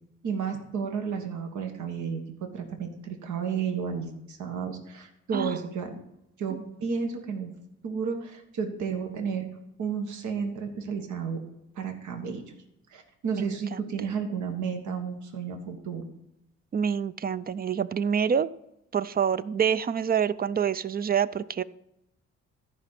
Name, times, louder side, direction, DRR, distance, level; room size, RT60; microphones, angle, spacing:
voice 1, 0.2-6.0 6.4-7.5 7.8-9.5 9.8-11.4 11.8-12.4 12.9-16.0, right 6 dB, 75° right, 4 dB, 1.6 m, -32 dB
voice 2, 13.3-13.9 16.7-18.5 18.9-21.6, right 7 dB, 30° right, 17 dB, 0.4 m, -27 dB
14.0 x 5.2 x 5.9 m, 0.84 s
cardioid pair, 90°, 30 cm